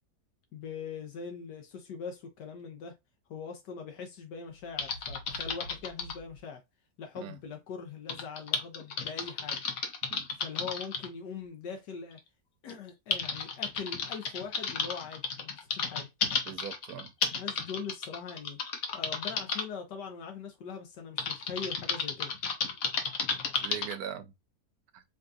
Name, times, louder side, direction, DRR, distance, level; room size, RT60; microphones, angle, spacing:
voice 1, 0.5-3.0 3.3-6.6 7.0-9.6 10.4-12.2 12.6-16.1 17.2-18.6 18.9-22.3, left 6 dB, 85° left, 1.5 m, -42 dB
Typing, 4.8-6.2 8.1-11.1 12.1-12.2 12.7-19.6 21.2-23.9, left 5 dB, 60° left, 1.3 m, -33 dB
voice 2, 16.4-17.1 23.6-24.3 24.9-25.0, right 9 dB, 70° right, 1.1 m, -41 dB
5.1 x 2.7 x 2.3 m
omnidirectional pair, 1.8 m